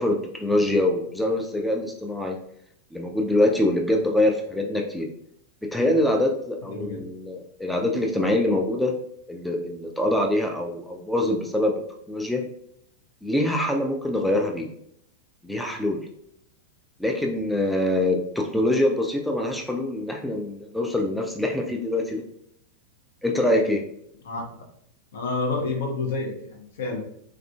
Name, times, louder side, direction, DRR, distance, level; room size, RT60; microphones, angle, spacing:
voice 1, 0.0-2.4 2.9-5.1 5.7-8.9 9.3-11.7 12.1-12.4 13.2-14.7 15.4-16.0 17.0-22.2 23.2-23.8, left 1 dB, ahead, 1 dB, 0.3 m, -24 dB
voice 2, 6.6-7.0 24.2-24.7 25.1-27.0, left 3 dB, 60° left, 1 dB, 0.6 m, -29 dB
3.4 x 2.4 x 2.3 m, 0.72 s
figure-of-eight pair, 90°, 0 cm